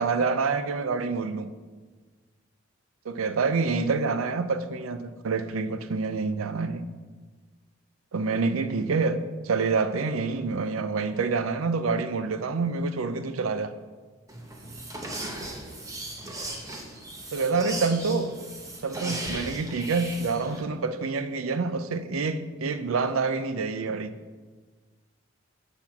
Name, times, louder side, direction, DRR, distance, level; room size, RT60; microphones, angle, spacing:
voice 1, 0.0-1.5 3.1-6.9 8.1-9.2 9.4-13.7 17.3-18.3 18.8-24.1, right 4 dB, 85° right, 0.5 m, -27 dB
sound 1, 14.3-20.6, right 1 dB, 15° right, 0.8 m, -37 dB
7.8 x 4.4 x 5.8 m
head